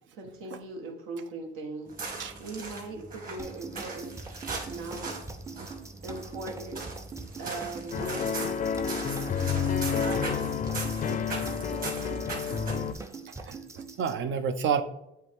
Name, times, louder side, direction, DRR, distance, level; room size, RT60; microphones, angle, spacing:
voice 1, 0.1-4.1 4.6-5.1 6.0-6.8 7.4-8.2 9.9-10.6, right 2 dB, 85° right, 1 dB, 1.3 m, -39 dB
sound 1, 1.9-13.0, right 3 dB, 45° right, 2.0 m, -39 dB
sound 2, 3.4-14.2, right 4 dB, 15° right, 0.5 m, -43 dB
sound 3, 7.9-12.9, left 7 dB, 40° left, 0.4 m, -30 dB
voice 2, 9.6-10.0 11.0-11.2 13.4-14.8, right 7 dB, 65° right, 10 dB, 0.7 m, -31 dB
8.0 x 3.4 x 3.5 m, 0.86 s
cardioid pair, 120°, 21 cm